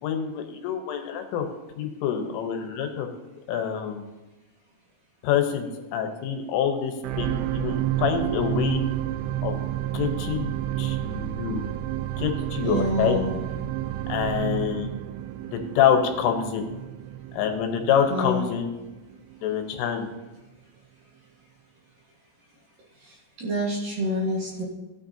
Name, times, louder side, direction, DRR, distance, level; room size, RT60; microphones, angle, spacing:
voice 1, 0.0-1.5 1.8-3.1 3.5-4.0 5.2-8.8 9.4-9.6 9.9-10.5 10.8-11.6 12.2-13.2 14.1-14.9 15.5-16.7 17.3-18.7 19.4-20.1, left 8 dB, 80° left, 5 dB, 3.6 m, -26 dB
sound 1, 7.0-19.4 20.0-20.1, right 13 dB, 85° right, 2.8 m, -30 dB
voice 2, 12.6-13.4 18.1-18.4 23.0-24.6, equal, 55° right, -4 dB, 2.8 m, -28 dB
17.0 x 9.7 x 2.8 m, 1.1 s
omnidirectional pair, 5.7 m